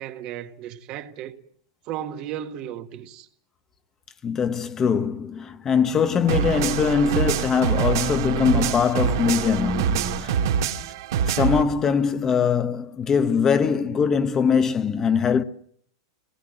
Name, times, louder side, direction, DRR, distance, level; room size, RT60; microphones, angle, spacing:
voice 1, 0.0-1.4 1.9-3.3, right 10 dB, 35° right, 1.6 m, -35 dB
voice 2, 4.2-10.4 11.2-15.4, left 6 dB, 20° left, 1.0 m, -22 dB
sound 1, 6.3-11.6, right 8 dB, 65° right, 2.1 m, -25 dB
27.0 x 19.5 x 7.7 m
supercardioid pair, 150°, 2 cm